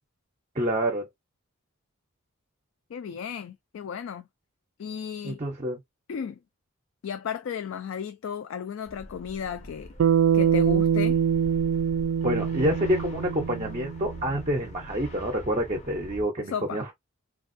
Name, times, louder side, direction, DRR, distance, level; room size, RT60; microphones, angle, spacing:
voice 1, 0.5-1.1 5.2-5.8 12.2-16.9, equal, 30° right, 0.5 m, -27 dB
voice 2, 2.9-4.3 4.8-5.4 6.1-6.4 7.0-9.9 10.3-11.2 16.5-16.8, left 7 dB, 65° left, 0.3 m, -34 dB
sound 1, 8.9-16.2, equal, 30° left, 0.6 m, -43 dB
Bass guitar, 10.0-14.4, right 8 dB, 85° right, 0.3 m, -24 dB
3.4 x 2.4 x 2.5 m
head